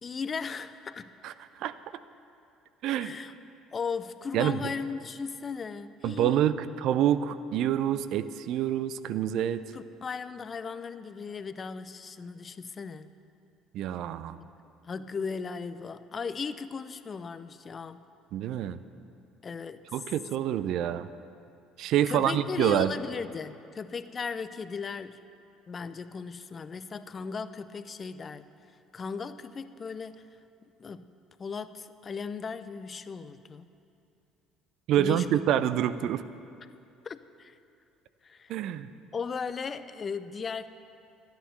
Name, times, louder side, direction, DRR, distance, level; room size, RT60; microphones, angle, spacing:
voice 1, 0.0-1.1 3.0-3.3 3.7-6.5 9.7-13.1 14.8-18.1 19.4-19.8 22.1-25.2 25.7-28.5 28.9-30.2 30.8-31.1 31.4-33.7 35.0-35.4 37.0-37.6 38.2-38.5 39.1-40.7, left 5 dB, 35° left, 12 dB, 0.6 m, -37 dB
voice 2, 1.2-1.8 2.8-3.1 4.3-4.6 6.0-9.6 13.7-14.4 18.3-18.8 19.9-21.1 21.8-22.9 34.9-36.2 38.5-38.9, right 11 dB, 55° right, 13 dB, 0.5 m, -27 dB
12.5 x 10.5 x 6.8 m, 2.6 s
figure-of-eight pair, 55°, 0 cm